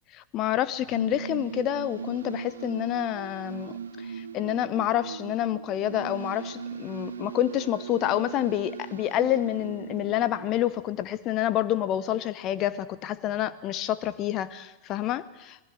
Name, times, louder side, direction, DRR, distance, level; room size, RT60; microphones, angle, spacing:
voice 1, 0.1-15.6, left 13 dB, 35° left, 15 dB, 0.9 m, -28 dB
sound 1, 0.7-11.2, right 7 dB, 70° right, 1.3 m, -38 dB
26.5 x 20.5 x 7.8 m, 0.99 s
figure-of-eight pair, 90°, 0 cm